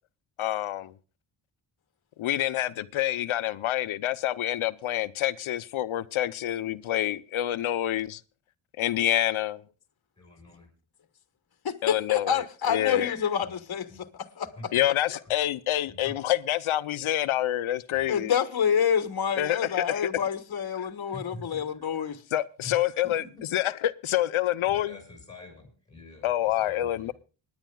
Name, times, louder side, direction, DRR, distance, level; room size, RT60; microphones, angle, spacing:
voice 1, 0.4-0.9 2.2-8.2 8.8-9.6 11.8-13.1 14.7-18.3 19.4-20.1 22.3-23.2 23.5-25.0 26.2-27.1, left 13 dB, 80° left, 0.8 m, -27 dB
voice 2, 10.2-10.7 13.4-13.5 13.9-14.0 14.6-14.7 15.1-15.2 15.9-16.1 17.9-18.0 21.1-21.8 22.6-23.3 24.6-27.1, left 2 dB, 10° left, 6.3 m, -46 dB
voice 3, 11.6-13.9 14.4-14.5 18.1-22.2, left 8 dB, 50° left, 1.4 m, -27 dB
26.0 x 10.5 x 2.3 m
cardioid pair, 80°, 48 cm